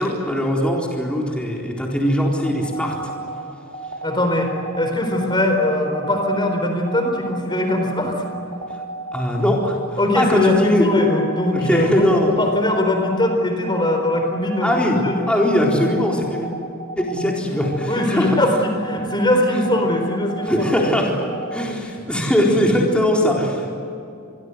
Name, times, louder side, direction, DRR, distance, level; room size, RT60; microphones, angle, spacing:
voice 1, 0.0-3.0 9.1-9.8 10.1-10.9 11.5-12.3 14.6-15.0 15.3-16.5 17.0-18.4 20.4-21.1 21.5-23.7, equal, 5° left, -2 dB, 4.1 m, -20 dB
sound 1, 2.4-21.7, right 2 dB, 70° right, 2.6 m, -33 dB
voice 2, 4.0-4.5 4.8-8.2 10.0-12.1 12.4-15.3 17.9-20.8, left 1 dB, 20° left, 4 dB, 4.2 m, -21 dB
28.5 x 23.0 x 8.2 m, 2.6 s
head